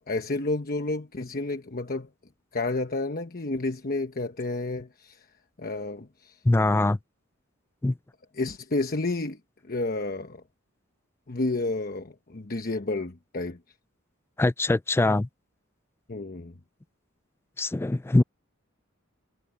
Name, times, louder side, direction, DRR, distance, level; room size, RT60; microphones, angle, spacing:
voice 1, 0.0-2.1 2.5-5.3 5.6-6.4 8.3-9.4 9.6-10.4 11.3-13.6 16.1-16.5, left 2 dB, 45° left, 1.1 m, -30 dB
voice 2, 6.5-7.0 7.8-7.9 14.4-15.3 17.6-18.2, left 2 dB, 10° left, 0.3 m, -22 dB
head